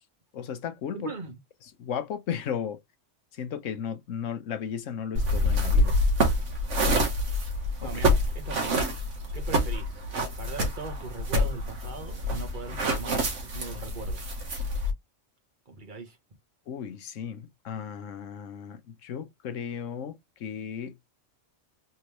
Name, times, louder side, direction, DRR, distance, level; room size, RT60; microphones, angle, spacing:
voice 1, 0.3-1.1 1.8-2.8 3.4-6.0 7.8-7.9 16.7-20.9, left 8 dB, 75° left, 1.1 m, -35 dB
voice 2, 0.9-1.4 6.8-7.0 7.8-8.8 9.3-10.0 10.4-14.2 15.7-16.2, right 3 dB, 40° right, 1.4 m, -40 dB
sound 1, 5.2-14.9, equal, 65° right, 1.5 m, -27 dB
3.8 x 3.5 x 3.0 m
omnidirectional pair, 1.3 m